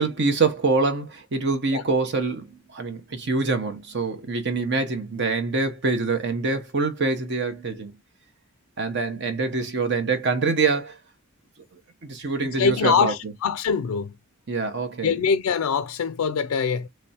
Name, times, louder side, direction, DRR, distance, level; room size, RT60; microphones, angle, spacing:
voice 1, 0.0-7.9 8.8-11.0 12.0-13.1 14.5-15.2, right 4 dB, 50° right, 0.8 m, -25 dB
voice 2, 12.4-14.1 15.0-16.9, left 6 dB, 75° left, 0.4 m, -23 dB
3.3 x 3.1 x 2.8 m
head